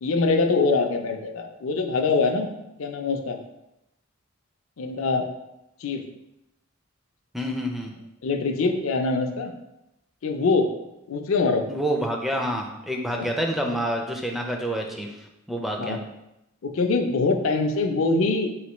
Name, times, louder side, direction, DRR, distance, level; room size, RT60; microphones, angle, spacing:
voice 1, 0.0-2.5 2.8-3.4 4.8-5.3 5.8-6.1 8.2-9.5 10.2-10.8 11.1-11.6 13.1-13.3 15.8-16.0 16.6-18.5, left 3 dB, 70° left, 5 dB, 0.5 m, -23 dB
voice 2, 7.3-7.9 11.7-15.1 15.5-16.0, equal, ahead, 1 dB, 0.3 m, -27 dB
3.9 x 3.2 x 3.0 m, 0.88 s
head